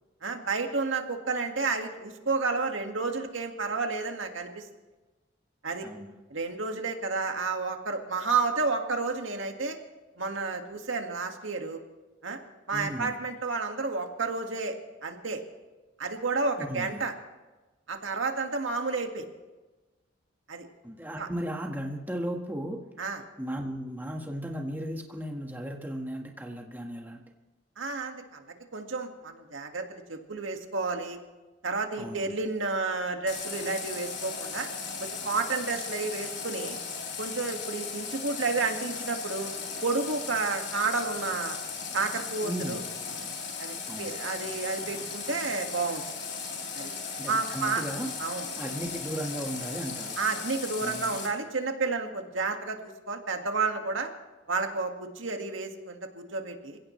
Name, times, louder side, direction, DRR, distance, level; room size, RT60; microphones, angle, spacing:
voice 1, 0.2-4.6 5.6-5.9 6.3-9.8 10.2-11.8 12.2-12.4 12.7-14.8 15.0-15.4 16.0-17.1 17.9-19.3 20.5-20.7 21.2-21.3 23.0-23.2 27.8-28.5 28.7-31.2 31.6-34.7 35.0-36.8 37.2-39.5 39.8-41.6 41.9-42.8 43.6-46.0 46.7-46.9 47.3-47.8 48.2-48.5 50.2-54.1 54.5-56.8, right 4 dB, 90° right, 4 dB, 1.9 m, -31 dB
voice 2, 12.7-13.2 16.6-17.0 20.8-22.9 23.4-27.2 32.0-32.3 42.4-42.8 43.9-44.1 47.2-48.1 48.6-50.2 50.8-51.2, equal, 10° right, 1 dB, 1.6 m, -36 dB
Water tap faucet, 33.3-51.3, left 5 dB, 65° left, 3.6 m, -37 dB
27.0 x 16.5 x 3.2 m, 1.2 s
head